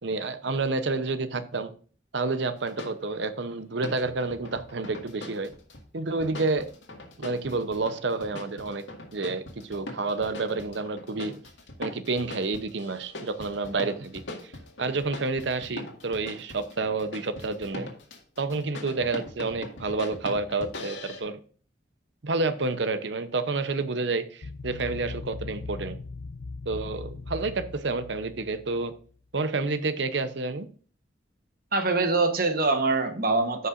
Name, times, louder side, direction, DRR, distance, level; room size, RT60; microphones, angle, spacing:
voice 1, 0.0-1.7 2.1-5.5 5.9-6.7 7.2-8.8 9.1-11.4 11.8-14.2 14.8-17.9 18.4-21.4 22.2-26.0 26.7-28.9 29.3-30.7, right 3 dB, 70° right, 12 dB, 0.8 m, -29 dB
sound 1, 2.6-2.9 3.8-5.8 6.2-21.2, left 2 dB, 80° left, 1.9 m, -41 dB
sound 2, 24.4-29.1, left 3 dB, 60° left, 0.4 m, -39 dB
voice 2, 31.7-33.7, right 3 dB, 50° right, 7 dB, 1.1 m, -24 dB
15.0 x 5.6 x 2.5 m, 0.42 s
head